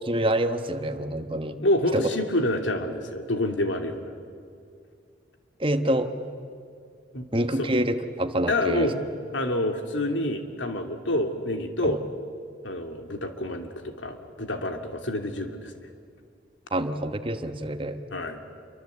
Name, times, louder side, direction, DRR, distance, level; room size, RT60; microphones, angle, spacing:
voice 1, 0.0-1.6 1.9-2.1 5.6-6.1 7.3-8.9 11.8-12.0 16.7-18.0, right 1 dB, 30° right, 8 dB, 1.2 m, -26 dB
voice 2, 1.6-4.0 7.1-7.3 7.6-7.7 8.5-9.0 9.3-12.0 12.6-15.7 18.1-18.4, left 1 dB, 80° left, 5 dB, 2.7 m, -27 dB
28.5 x 24.0 x 8.3 m, 2.3 s
head